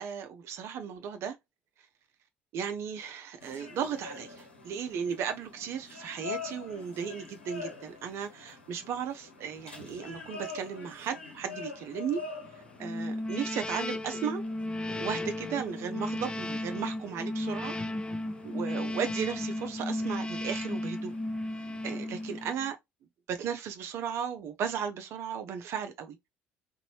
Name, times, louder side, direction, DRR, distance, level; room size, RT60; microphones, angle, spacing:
voice 1, 0.0-1.4 2.5-12.2 12.8-14.4 14.9-17.7 18.4-21.1 21.8-22.8 23.3-26.3, right 7 dB, 50° right, 0.6 m, -35 dB
sound 1, 3.4-22.5, left 4 dB, 85° left, 1.2 m, -47 dB
sound 2, 12.8-22.7, left 1 dB, 15° left, 0.6 m, -34 dB
4.0 x 2.7 x 2.9 m
figure-of-eight pair, 55°, 6 cm